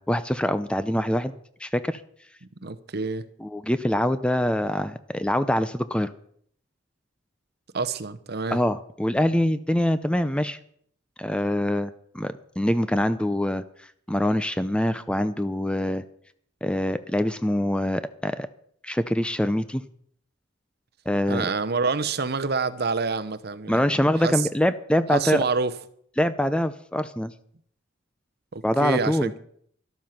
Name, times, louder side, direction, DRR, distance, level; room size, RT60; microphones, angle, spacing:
voice 1, 0.0-1.3 1.6-2.0 3.4-6.1 8.5-10.6 11.2-13.6 14.1-16.0 16.6-18.5 18.8-19.8 21.1-21.5 23.7-25.4 26.2-27.3 28.6-29.3, left 1 dB, 5° left, 0.5 m, -24 dB
voice 2, 2.6-3.3 7.7-8.6 21.3-23.9 24.2-24.5 25.1-25.7 28.5-29.4, right 4 dB, 55° right, 0.9 m, -27 dB
12.5 x 12.5 x 5.9 m
head